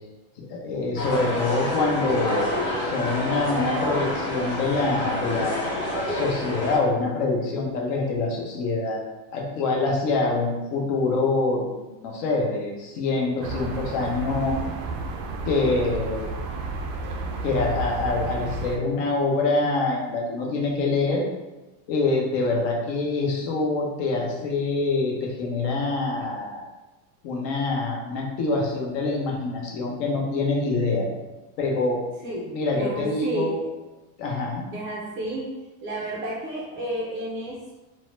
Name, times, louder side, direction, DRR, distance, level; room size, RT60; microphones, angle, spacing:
voice 1, 0.4-2.4 2.8-9.0 9.3-14.6 15.5-16.3 17.4-21.2 21.9-26.6 27.2-31.1 31.6-32.0 32.5-33.6 34.2-34.7, left 3 dB, 55° left, -1 dB, 0.7 m, -25 dB
sound 1, 1.0-6.8, left 1 dB, 25° left, 0.9 m, -28 dB
sound 2, 13.4-18.8, right 3 dB, 90° right, 0.6 m, -32 dB
voice 2, 32.2-33.7 34.7-35.5 35.8-37.7, right 1 dB, 30° right, -5 dB, 0.4 m, -31 dB
2.7 x 2.1 x 3.1 m, 1.1 s
supercardioid pair, 150°, 46 cm